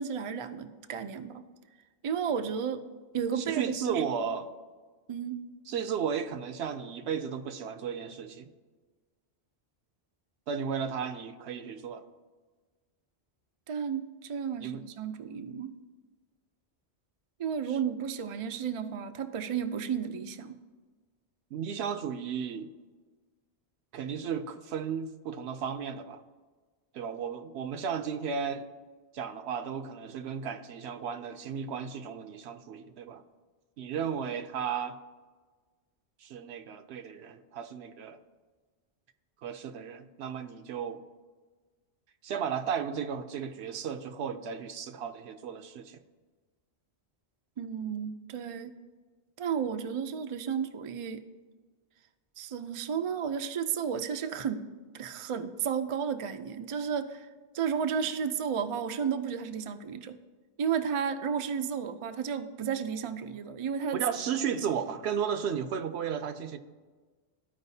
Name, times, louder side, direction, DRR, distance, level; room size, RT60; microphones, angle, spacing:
voice 1, 0.0-1.4 2.0-2.8 3.1-4.0 5.1-5.4 13.7-15.7 17.4-20.6 47.6-48.7 49.4-51.2 52.4-54.7 54.9-57.3 57.5-60.2 60.6-64.0, right 7 dB, 55° right, 0.3 m, -33 dB
voice 2, 3.4-4.5 5.7-8.5 10.5-12.1 14.6-14.8 17.7-17.8 21.5-22.7 23.9-26.2 26.9-28.7 29.1-33.2 33.8-35.0 36.2-38.2 39.4-41.0 42.2-46.0 63.9-66.6, right 7 dB, 75° right, 0.8 m, -34 dB
14.5 x 4.8 x 2.7 m
omnidirectional pair, 1.1 m